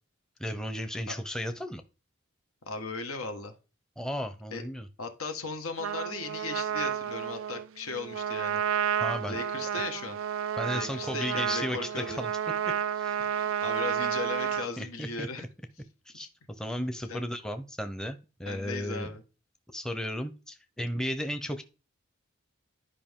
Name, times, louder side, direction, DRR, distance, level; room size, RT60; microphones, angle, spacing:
voice 1, 0.4-1.8 4.0-4.9 9.0-9.4 10.6-12.3 13.0-13.2 14.8-15.3 16.1-16.3 16.6-19.1 19.7-21.6, equal, 5° left, 8 dB, 0.6 m, -34 dB
voice 2, 2.7-3.5 4.5-4.6 5.0-8.6 9.3-10.2 10.7-12.2 13.2-15.4 16.1-16.3 17.1-17.2 18.4-19.2, left 4 dB, 90° left, 6 dB, 1.6 m, -37 dB
Trumpet, 5.8-14.7, right 9 dB, 70° right, 0.3 m, -31 dB
11.5 x 5.1 x 3.6 m, 0.33 s
head